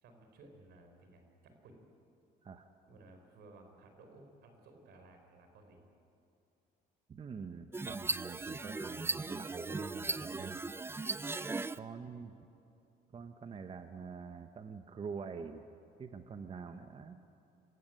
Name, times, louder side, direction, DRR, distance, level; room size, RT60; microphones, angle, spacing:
voice 1, 0.0-1.9 2.8-5.9, right 2 dB, 75° right, 5 dB, 4.5 m, -58 dB
voice 2, 7.1-10.6 11.7-12.3 13.1-15.6 16.0-17.2, right 5 dB, 35° right, 8 dB, 1.0 m, -45 dB
sound 1, 7.7-11.8, right 3 dB, 15° right, 0.5 m, -37 dB
26.0 x 15.5 x 9.1 m, 2.7 s
cardioid pair, 110°, 17 cm